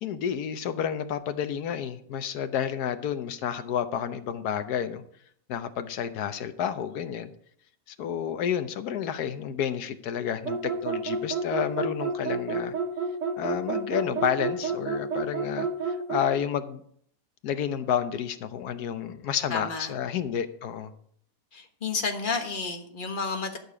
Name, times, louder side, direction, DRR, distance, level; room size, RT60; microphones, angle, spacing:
voice 1, 0.0-5.0 5.5-7.3 8.0-12.7 13.4-16.8 17.4-20.9, left 8 dB, 70° left, 10 dB, 1.3 m, -30 dB
sound 1, 10.4-16.3, right 4 dB, 90° right, 2.0 m, -30 dB
voice 2, 19.5-19.9 21.5-23.6, left 4 dB, 35° left, 4 dB, 1.3 m, -31 dB
12.0 x 6.6 x 5.0 m, 0.64 s
omnidirectional pair, 1.8 m